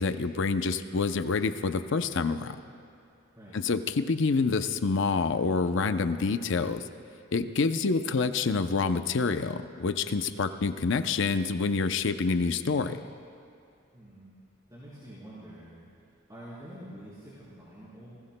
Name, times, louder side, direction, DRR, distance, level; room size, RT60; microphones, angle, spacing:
voice 1, 0.0-2.6 3.5-6.8 7.3-13.0, left 4 dB, 60° left, 9 dB, 0.6 m, -27 dB
voice 2, 13.9-14.3 14.7-15.8 16.3-18.2, right 1 dB, 20° right, -10 dB, 3.7 m, -46 dB
29.0 x 20.0 x 2.2 m, 2.5 s
head